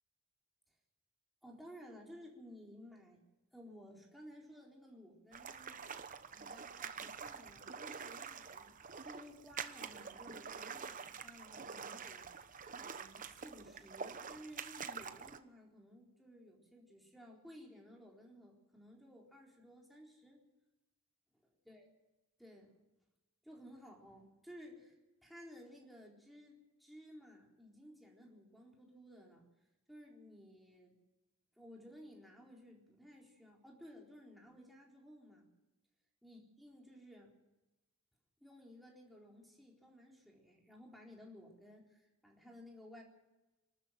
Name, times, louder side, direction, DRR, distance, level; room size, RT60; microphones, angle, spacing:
voice 1, 1.4-3.2 3.5-6.0 6.3-20.4 21.7-21.9 22.4-22.8 23.4-25.0 25.2-29.5 29.9-31.0 31.6-35.5 36.2-37.3 38.4-43.0, equal, ahead, -2 dB, 4.2 m, -56 dB
sound 1, 5.3-15.4, right 6 dB, 40° right, 0.9 m, -47 dB
27.0 x 12.5 x 7.6 m, 1.1 s
head